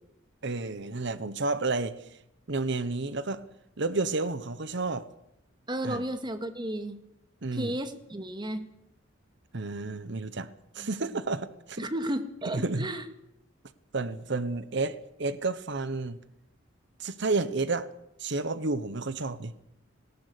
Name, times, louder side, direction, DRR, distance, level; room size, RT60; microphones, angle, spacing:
voice 1, 0.4-2.2 2.5-3.4 3.8-5.1 5.8-6.0 7.4-7.8 9.5-10.5 10.7-11.9 12.5-12.9 13.9-16.2 17.0-17.9 18.2-19.6, right 3 dB, 65° right, 14 dB, 1.1 m, -31 dB
voice 2, 5.7-7.0 7.5-8.7 10.8-10.9 11.8-13.0, right 1 dB, 25° right, 9 dB, 2.0 m, -33 dB
19.5 x 18.0 x 8.3 m, 0.82 s
head